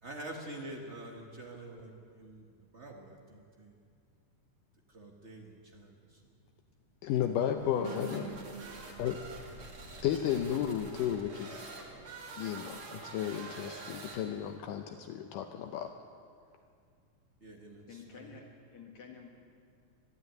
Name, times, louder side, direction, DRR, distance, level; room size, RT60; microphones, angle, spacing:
voice 1, 0.0-3.8 4.9-6.3 17.4-18.4, right 1 dB, 80° right, 0 dB, 0.6 m, -47 dB
voice 2, 7.0-8.3 9.0-9.2 10.0-11.7 12.4-16.0, left 10 dB, 75° left, 5 dB, 2.3 m, -33 dB
sound 1, 7.6-14.6, right 4 dB, 50° right, 3.4 m, -46 dB
voice 3, 8.0-8.4 17.9-18.4 18.7-19.3, left 6 dB, 55° left, 0 dB, 2.9 m, -50 dB
22.5 x 12.5 x 9.3 m, 2.3 s
omnidirectional pair, 4.0 m